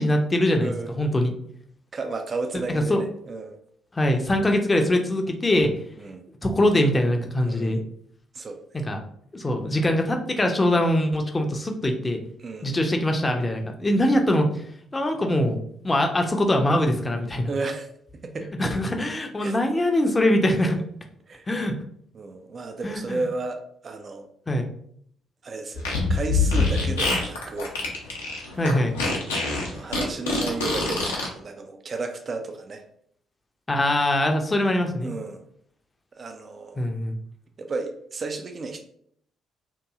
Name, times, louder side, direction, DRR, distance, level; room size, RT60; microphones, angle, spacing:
voice 1, 0.0-1.3 2.7-3.0 3.9-5.7 6.4-7.8 8.7-9.0 9.3-12.2 12.6-14.6 14.9-17.5 18.6-20.8 21.5-21.7 22.8-23.2 24.5-24.7 28.6-28.9 33.7-35.1 36.8-37.2, left 1 dB, 25° left, 3 dB, 0.5 m, -23 dB
voice 2, 0.6-1.0 1.9-3.6 6.0-6.2 7.5-7.8 8.3-8.8 12.4-12.9 17.5-17.9 18.1-18.7 19.4-19.6 20.5-20.8 21.3-21.5 22.1-24.3 25.4-27.8 28.3-28.5 29.4-32.8 35.0-35.4 36.1-36.8 37.6-38.8, right 3 dB, 40° right, 5 dB, 0.3 m, -33 dB
Fart, 25.7-31.3, left 3 dB, 80° left, 0.5 m, -24 dB
2.7 x 2.6 x 2.3 m, 0.66 s
figure-of-eight pair, 40°, 0 cm